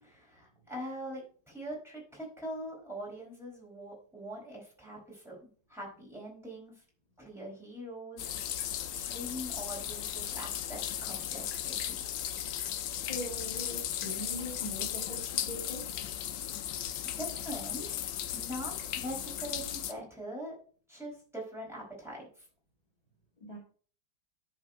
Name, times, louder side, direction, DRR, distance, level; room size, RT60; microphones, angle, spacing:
voice 1, 0.0-1.2 1.5-5.4 5.7-6.7 7.2-8.3 8.9-12.0 16.5-16.8 17.2-18.0 18.3-20.5 20.9-22.3, equal, ahead, -4 dB, 4.6 m, -42 dB
sound 1, 8.2-19.9, left 10 dB, 90° left, 1.4 m, -36 dB
voice 2, 12.9-16.0 23.4-23.6, equal, 20° left, -1 dB, 1.8 m, -41 dB
10.5 x 4.5 x 5.3 m, 0.43 s
omnidirectional pair, 1.9 m